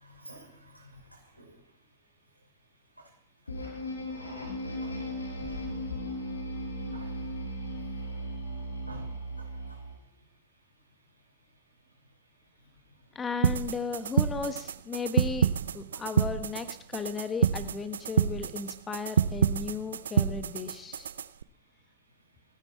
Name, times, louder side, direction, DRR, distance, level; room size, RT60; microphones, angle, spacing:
voice 1, 0.0-1.5 4.8-5.0 5.4-5.6 6.9-7.1 8.9-9.1 9.4-9.8, equal, 90° right, -2 dB, 6.1 m, -48 dB
sound 1, 3.5-10.0, equal, 75° left, 5.9 m, -37 dB
voice 2, 13.1-21.1, left 5 dB, 20° left, 11 dB, 1.5 m, -35 dB
sound 2, 13.4-21.4, right 8 dB, 65° right, 0.6 m, -28 dB
27.5 x 10.0 x 4.6 m, 0.65 s
figure-of-eight pair, 90°, 0 cm